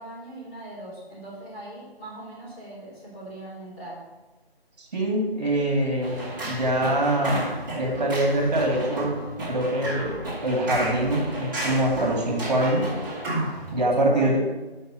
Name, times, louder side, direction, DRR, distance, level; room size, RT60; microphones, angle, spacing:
voice 1, 0.0-4.0 13.7-14.4, right 1 dB, 5° left, -10 dB, 1.3 m, -40 dB
voice 2, 4.9-6.2 6.4-7.4 7.7-12.9 13.7-14.4, right 1 dB, 40° right, 0 dB, 2.2 m, -24 dB
sound 1, 6.0-13.7, right 1 dB, 20° right, 1.8 m, -32 dB
6.2 x 5.6 x 6.2 m, 1.1 s
figure-of-eight pair, 165°, 31 cm